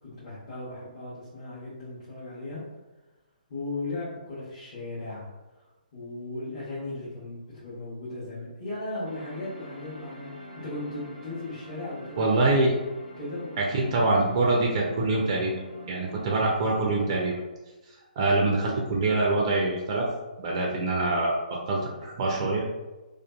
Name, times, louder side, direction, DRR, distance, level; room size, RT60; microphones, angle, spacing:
voice 1, 0.0-2.6 3.5-5.3 5.9-12.5 13.2-14.0, left 2 dB, 35° left, -11 dB, 0.8 m, -37 dB
sound 1, 9.0-17.4, equal, 80° left, 0.7 m, -45 dB
voice 2, 12.2-12.7 13.6-15.5 15.9-17.4 18.2-20.1 20.4-21.4 21.7-22.6, right 2 dB, 35° right, -2 dB, 0.3 m, -24 dB
2.5 x 2.3 x 2.2 m, 1.1 s
figure-of-eight pair, 130°, 5 cm